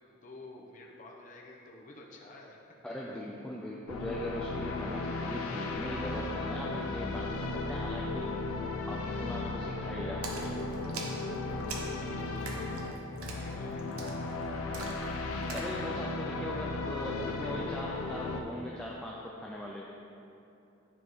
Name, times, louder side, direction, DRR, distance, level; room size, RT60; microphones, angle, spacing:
voice 1, 0.0-2.6 9.0-9.3 11.4-12.4 13.2-14.5, left 2 dB, 35° left, -2 dB, 0.7 m, -51 dB
voice 2, 2.8-8.3 8.9-10.3 15.5-19.9, equal, 5° left, -4 dB, 0.4 m, -40 dB
sound 1, 3.9-18.4, left 3 dB, 85° left, 0.5 m, -35 dB
Splash splatter, 10.2-15.8, right 3 dB, 85° right, 0.9 m, -44 dB
10.0 x 3.6 x 4.7 m, 2.9 s
head